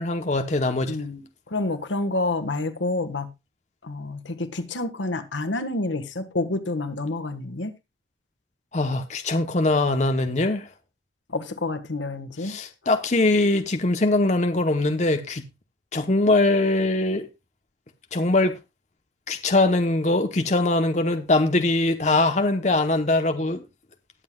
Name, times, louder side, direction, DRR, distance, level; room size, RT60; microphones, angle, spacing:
voice 1, 0.0-1.0 8.7-10.7 12.4-15.4 15.9-17.3 18.1-18.6 19.3-23.6, left 2 dB, 40° left, 0.8 m, -22 dB
voice 2, 0.9-3.3 3.8-7.7 11.3-12.6, left 2 dB, 90° left, 1.4 m, -28 dB
19.5 x 7.7 x 2.3 m
head